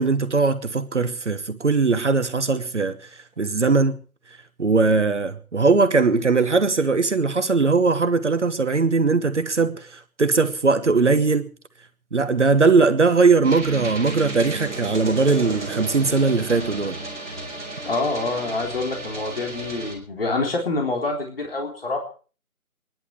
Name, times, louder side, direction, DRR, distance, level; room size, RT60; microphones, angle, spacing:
voice 1, 0.0-3.0 3.4-4.0 4.6-11.5 12.1-17.0, right 4 dB, 55° right, 1.3 m, -20 dB
sound 1, 13.4-19.9, right 2 dB, ahead, 2.0 m, -33 dB
voice 2, 17.9-22.0, left 3 dB, 40° left, 3.7 m, -26 dB
26.0 x 11.0 x 4.7 m
figure-of-eight pair, 170°, 43 cm